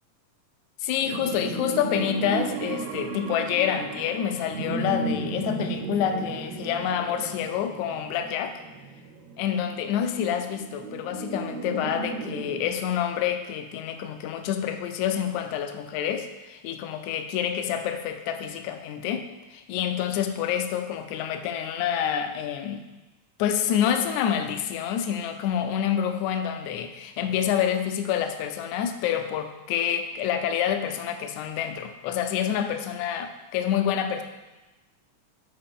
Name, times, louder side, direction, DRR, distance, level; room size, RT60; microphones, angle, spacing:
voice 1, 0.8-8.6 9.4-22.8 23.4-34.2, left 9 dB, 80° left, 7 dB, 1.9 m, -28 dB
sound 1, 1.0-12.7, right 3 dB, 70° right, 1.7 m, -34 dB
11.0 x 4.8 x 3.6 m, 1.1 s
omnidirectional pair, 3.5 m